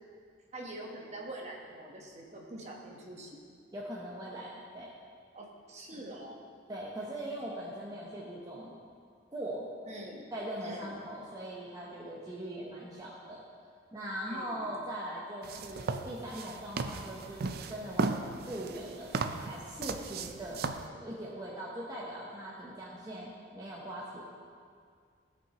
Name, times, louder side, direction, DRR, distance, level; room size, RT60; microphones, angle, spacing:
voice 1, 0.5-3.4 5.3-6.4 9.9-10.3 10.6-10.9 14.2-14.7, right 1 dB, 35° right, -1 dB, 1.1 m, -44 dB
voice 2, 3.7-4.9 6.7-8.8 9.3-9.6 10.3-13.4 13.9-20.6 20.9-24.3, right 1 dB, 20° right, -5 dB, 0.8 m, -41 dB
sound 1, 15.4-20.9, right 4 dB, 55° right, 0.4 m, -36 dB
15.5 x 5.5 x 2.9 m, 2.1 s
head